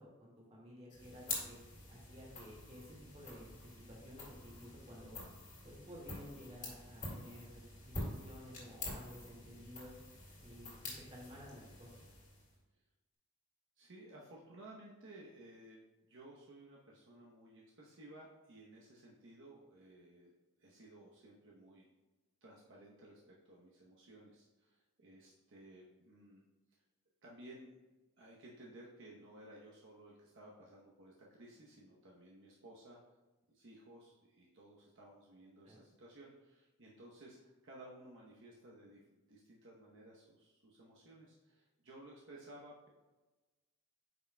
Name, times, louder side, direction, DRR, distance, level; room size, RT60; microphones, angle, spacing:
voice 1, 0.0-1.6 1.9-5.2 5.6-9.9 10.4-12.0 35.6-35.8, equal, 30° right, -4 dB, 1.9 m, -54 dB
sound 1, 0.9-12.6, left 2 dB, 35° left, 2.1 m, -47 dB
voice 2, 13.8-15.8 16.1-20.3 20.6-21.9 22.4-26.4 26.7-26.8 27.2-27.7 28.2-33.0 33.5-39.0 39.3-42.9, right 1 dB, 60° right, -3 dB, 0.9 m, -57 dB
9.0 x 5.8 x 2.2 m, 1.2 s
head